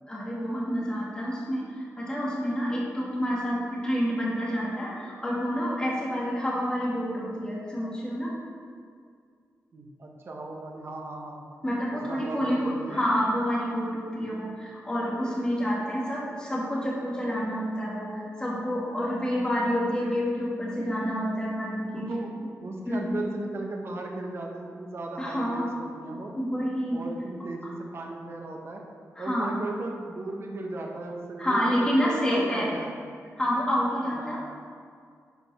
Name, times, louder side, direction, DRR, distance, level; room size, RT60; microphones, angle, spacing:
voice 1, 0.0-8.4 11.6-22.1 22.9-23.1 25.2-25.7 26.3-27.0 27.6-27.7 29.2-29.5 31.4-32.7 33.4-34.4, equal, 15° left, -5 dB, 2.3 m, -28 dB
voice 2, 9.7-11.4 11.9-13.1 20.8-20.9 21.9-26.4 26.9-28.8 29.2-32.9 34.1-34.4, right 2 dB, 45° right, 0 dB, 1.3 m, -36 dB
10.5 x 5.4 x 5.6 m, 2.2 s
wide cardioid pair, 150°, 6 cm